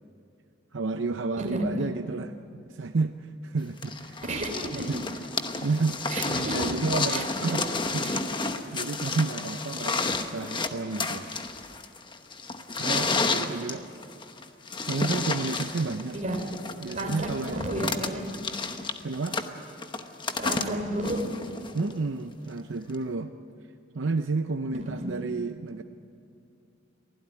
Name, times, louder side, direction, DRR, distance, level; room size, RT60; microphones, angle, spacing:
voice 1, 0.7-4.2 4.7-5.0 5.6-8.2 8.7-11.3 12.8-13.8 14.8-16.2 16.8-17.7 19.0-19.4 21.7-23.3 23.9-25.8, right 3 dB, 75° right, 8 dB, 0.6 m, -31 dB
sound 1, 3.8-21.9 22.9-23.0, left 3 dB, 25° left, 1.1 m, -31 dB
voice 2, 4.2-4.9 6.1-6.8 7.1-7.2 8.0-8.2 16.1-16.4 16.9-18.2 20.4-21.2 24.8-25.1, right 1 dB, 40° right, 3 dB, 3.3 m, -32 dB
24.0 x 16.5 x 9.5 m, 2.6 s
head